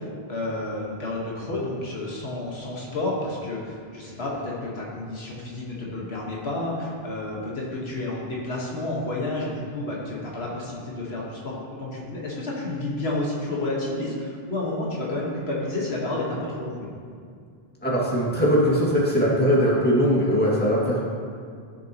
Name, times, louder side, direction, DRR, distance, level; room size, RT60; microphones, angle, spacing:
voice 1, 0.0-16.9, left 2 dB, 85° left, -4 dB, 1.7 m, -30 dB
voice 2, 17.8-21.0, equal, 10° left, -6 dB, 2.0 m, -20 dB
13.0 x 7.2 x 3.0 m, 2.2 s
omnidirectional pair, 1.0 m